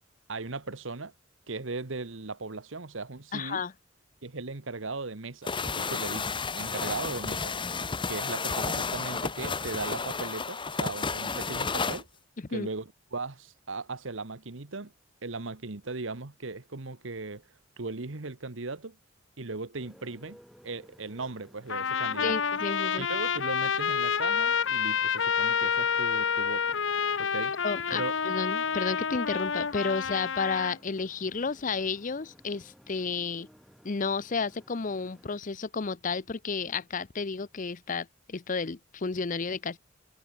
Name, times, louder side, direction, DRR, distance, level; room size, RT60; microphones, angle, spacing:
voice 1, 0.3-1.1 1.5-3.6 4.2-7.4 8.1-12.1 12.5-14.9 15.2-17.4 17.8-19.0 19.4-20.4 20.6-22.3 23.0-26.8 27.2-27.6 27.9-28.1, right 3 dB, 70° right, 1.3 m, -37 dB
voice 2, 3.3-3.7 12.5-12.7 22.2-23.1 27.6-33.5 33.8-39.8, left 4 dB, 40° left, 0.6 m, -32 dB
sound 1, 5.5-12.0, left 4 dB, 25° left, 1.2 m, -32 dB
Motorcycle, 19.7-35.4, equal, ahead, 6.2 m, -57 dB
Trumpet, 21.7-30.8, left 6 dB, 65° left, 0.9 m, -28 dB
head